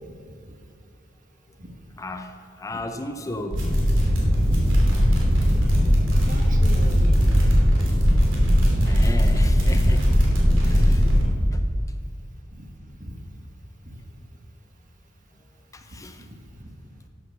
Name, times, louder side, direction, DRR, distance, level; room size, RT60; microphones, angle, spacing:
voice 1, 2.0-3.6 8.8-10.1 10.6-11.1 11.5-11.6 15.7-16.3, left 1 dB, 15° left, 6 dB, 0.5 m, -35 dB
sound 1, 3.5-11.2, equal, 75° right, 3.0 m, -19 dB
voice 2, 4.5-4.8 5.4-7.1 8.7-9.3 11.1-11.4 12.5-13.2 13.8-14.0 16.2-16.7, equal, 40° right, 3 dB, 1.5 m, -40 dB
11.5 x 8.0 x 6.9 m, 2.2 s
head